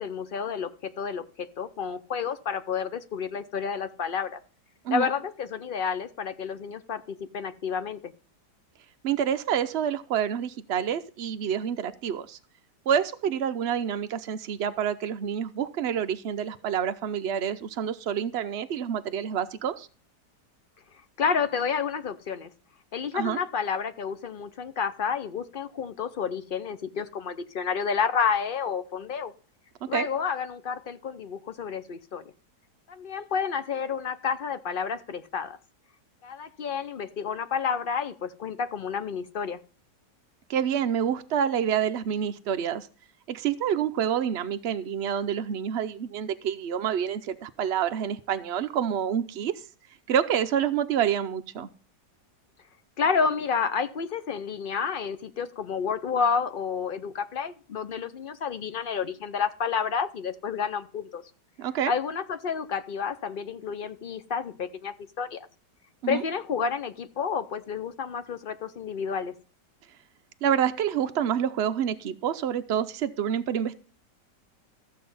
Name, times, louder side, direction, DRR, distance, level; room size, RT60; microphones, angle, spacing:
voice 1, 0.0-4.4 4.9-8.1 21.2-22.5 22.9-29.3 29.9-32.2 32.9-35.6 36.2-39.6 53.0-61.2 61.9-65.5 66.1-69.3, left 6 dB, 65° left, 12 dB, 0.5 m, -30 dB
voice 2, 9.0-12.4 12.9-19.9 23.1-23.4 29.8-30.1 40.5-42.9 43.3-49.6 50.1-51.7 61.6-61.9 66.0-66.2 70.4-73.8, right 8 dB, 65° right, 9 dB, 0.6 m, -28 dB
14.0 x 7.6 x 5.5 m, 0.40 s
omnidirectional pair, 1.8 m